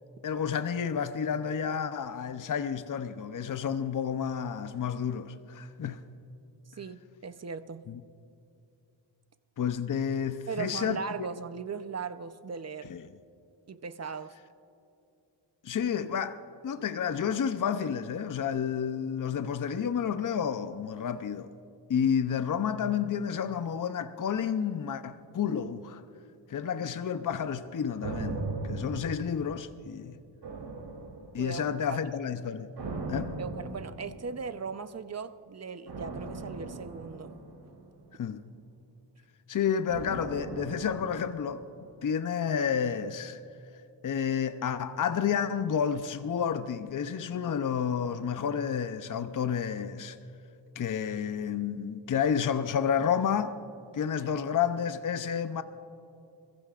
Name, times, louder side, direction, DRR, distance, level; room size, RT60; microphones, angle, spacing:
voice 1, 0.2-6.0 7.9-8.0 9.6-11.3 12.9-13.0 15.6-21.5 21.9-26.0 26.5-30.2 31.3-32.7 33.1-33.4 38.2-38.4 39.5-41.6 42.0-43.4 44.0-50.2 50.8-53.6 53.9-55.6, left 7 dB, 45° left, 0.7 m, -30 dB
voice 2, 6.8-7.9 10.5-12.9 13.7-14.4 31.4-32.0 33.4-37.4, right 5 dB, 35° right, 0.8 m, -38 dB
sound 1, 28.0-29.9 30.4-31.7 32.8-34.5 35.9-38.3 39.9-42.0 42.3-42.4, right 3 dB, 65° right, 3.4 m, -39 dB
25.0 x 15.5 x 2.5 m
cardioid pair, 65°, 46 cm